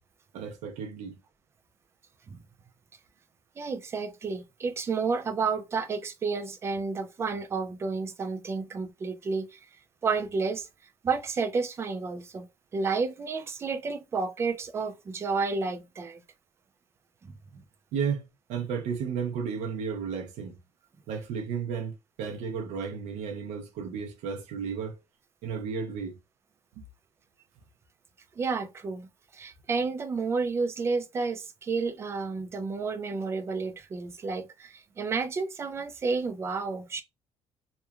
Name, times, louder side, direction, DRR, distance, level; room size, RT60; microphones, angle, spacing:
voice 1, 0.3-1.2 17.9-20.6 21.1-25.0 25.4-26.2 26.8-26.9, right 6 dB, 90° right, 0.5 m, -33 dB
voice 2, 3.6-9.6 10.0-10.7 11.0-12.5 12.7-16.2 17.2-17.6 28.4-37.0, right 4 dB, 20° right, 0.3 m, -31 dB
2.9 x 2.1 x 2.3 m
cardioid pair, 165°, 12 cm